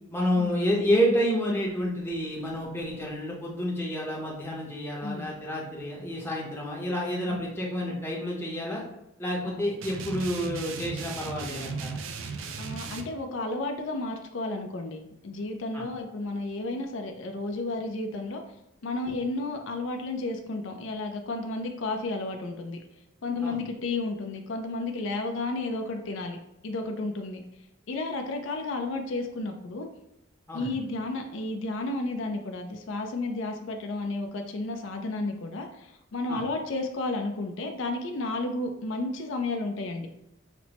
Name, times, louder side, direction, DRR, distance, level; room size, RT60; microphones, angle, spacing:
voice 1, 0.1-8.8 9.2-12.0 15.7-15.8 23.4-23.6 30.5-30.7 36.3-36.4, equal, 10° left, -3 dB, 0.7 m, -29 dB
sound 1, 9.8-13.1, right 5 dB, 70° right, 0.4 m, -36 dB
voice 2, 12.6-18.4 18.8-22.8 23.2-26.4 26.6-27.4 27.9-29.9 30.5-40.1, left 2 dB, 70° left, 4 dB, 0.4 m, -32 dB
5.8 x 2.0 x 2.9 m, 0.88 s
head